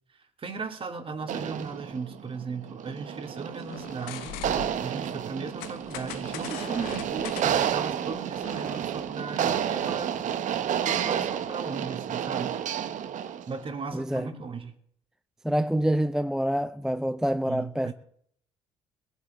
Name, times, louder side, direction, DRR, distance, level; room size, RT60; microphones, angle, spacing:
voice 1, 0.4-4.4 4.8-10.2 10.8-12.5 13.5-14.7 17.5-17.9, right 4 dB, 35° right, 2.5 m, -37 dB
sound 1, 1.2-13.6, right 9 dB, 55° right, 1.0 m, -31 dB
sound 2, 3.6-4.9 5.6-8.8, left 17 dB, 70° left, 0.5 m, -41 dB
voice 2, 13.9-14.3 15.4-17.9, right 1 dB, 5° right, 0.4 m, -26 dB
21.5 x 8.3 x 4.2 m
hypercardioid pair, 55°, 16 cm